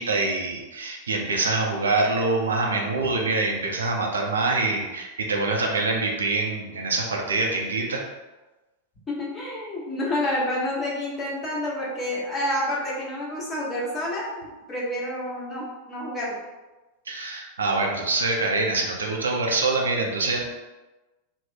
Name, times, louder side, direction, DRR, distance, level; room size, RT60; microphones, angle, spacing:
voice 1, 0.0-8.0 17.1-20.4, right 3 dB, 70° right, 0 dB, 0.5 m, -25 dB
voice 2, 9.1-16.4, left 1 dB, 15° left, -6 dB, 1.1 m, -29 dB
2.9 x 2.0 x 3.7 m, 1.1 s
figure-of-eight pair, 90°, 0 cm